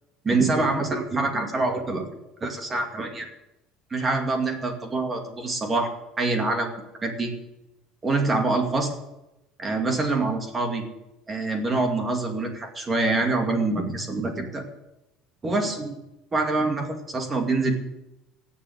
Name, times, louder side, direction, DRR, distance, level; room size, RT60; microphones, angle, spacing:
voice 1, 0.2-2.0 2.4-3.3 3.9-5.9 6.2-6.7 7.0-7.3 8.0-8.9 9.6-10.8 11.3-14.6 15.4-15.9 16.3-17.7, right 3 dB, 20° right, 4 dB, 2.4 m, -25 dB
17.0 x 7.3 x 8.1 m, 0.93 s
cardioid pair, 140°, 0 cm